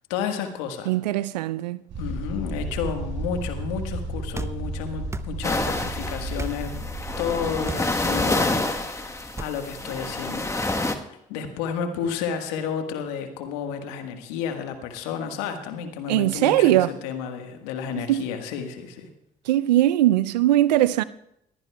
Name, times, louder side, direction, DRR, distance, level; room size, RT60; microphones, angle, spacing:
voice 1, 0.1-0.9 2.0-6.8 7.2-8.9 9.4-19.1, left 7 dB, 75° left, 1.5 m, -31 dB
voice 2, 0.9-1.8 16.1-16.9 17.9-18.2 19.5-21.0, right 14 dB, 85° right, 0.4 m, -20 dB
sound 1, 1.9-7.8, right 1 dB, 65° right, 5.3 m, -33 dB
sound 2, 4.3-4.6 5.1-5.3 6.4-6.6 7.6-7.9 9.4-9.6, right 3 dB, 15° right, 0.7 m, -34 dB
sound 3, 5.4-10.9, left 2 dB, 15° left, 1.3 m, -28 dB
22.0 x 15.0 x 2.3 m
hypercardioid pair, 45°, 21 cm